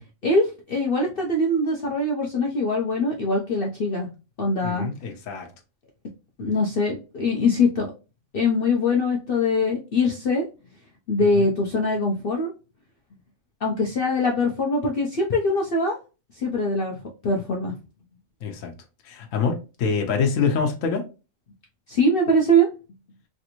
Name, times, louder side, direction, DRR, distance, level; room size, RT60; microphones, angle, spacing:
voice 1, 0.2-4.1 4.4-4.9 6.4-7.9 8.3-10.4 11.1-12.5 13.6-16.0 16.4-17.0 17.2-17.7 21.9-22.7, left 1 dB, 55° left, 0.7 m, -22 dB
voice 2, 4.6-5.5 11.2-11.5 18.4-18.7 19.0-21.0, left 5 dB, 70° left, 1.1 m, -25 dB
3.3 x 2.6 x 2.8 m
omnidirectional pair, 1.4 m